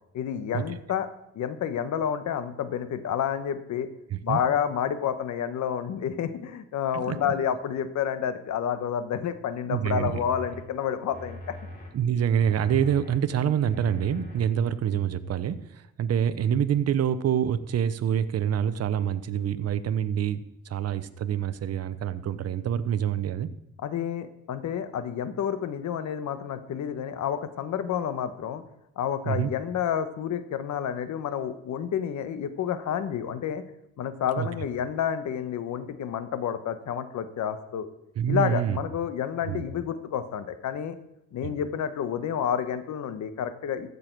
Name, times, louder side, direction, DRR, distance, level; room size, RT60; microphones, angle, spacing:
voice 1, 0.1-1.1 1.3-3.9 4.2-11.6 23.8-28.6 29.0-33.6 34.0-37.9 38.3-40.9 41.3-43.9, left 8 dB, 70° left, 10 dB, 1.1 m, -29 dB
voice 2, 9.7-10.2 11.9-23.5 29.3-29.5 34.4-34.5 38.2-38.8 39.5-39.7 41.4-41.5, right 9 dB, 55° right, 13 dB, 0.8 m, -26 dB
sound 1, 9.8-10.6 11.1-11.9 12.4-13.2 13.7-14.4 15.0-15.1, left 1 dB, 30° left, 3.1 m, -41 dB
15.0 x 6.8 x 4.6 m, 0.84 s
cardioid pair, 90°, 30 cm